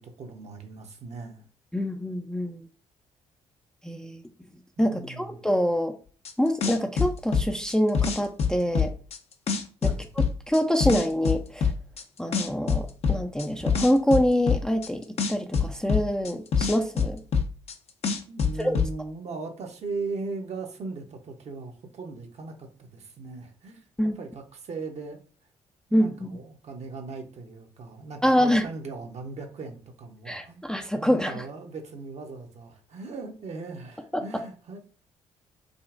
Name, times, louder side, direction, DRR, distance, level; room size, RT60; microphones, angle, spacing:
voice 1, 0.0-1.5 4.8-5.4 9.8-10.1 18.3-23.9 24.1-25.2 25.9-30.6 31.0-34.8, right 3 dB, 45° right, 3 dB, 0.9 m, -38 dB
voice 2, 1.7-2.7 3.8-4.2 4.8-5.9 6.4-8.9 9.8-9.9 10.5-11.7 12.2-17.2 18.6-18.8 24.0-24.2 25.9-26.3 28.2-28.6 30.3-31.4 34.1-34.2, equal, 5° left, 5 dB, 0.5 m, -25 dB
sound 1, 6.3-6.4 6.6-9.2 9.5-12.0 12.3-14.9 15.2-17.7 18.0-18.9, left 6 dB, 45° left, 0.7 m, -25 dB
5.0 x 2.3 x 2.5 m, 0.41 s
figure-of-eight pair, 45°, 15 cm